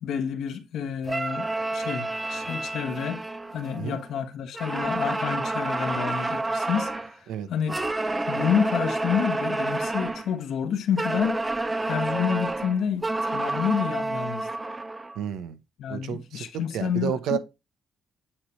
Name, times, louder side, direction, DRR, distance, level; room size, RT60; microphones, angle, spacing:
voice 1, 0.0-3.2 3.5-7.8 8.3-11.4 11.9-14.5 15.8-17.4, left 8 dB, 75° left, 1.0 m, -29 dB
sound 1, 1.1-4.1 4.5-7.1 7.7-10.3 11.0-15.2, right 2 dB, 15° right, 0.5 m, -29 dB
voice 2, 15.2-15.6 15.9-17.4, right 9 dB, 85° right, 0.8 m, -31 dB
8.8 x 3.2 x 4.4 m
cardioid pair, 90°, 0 cm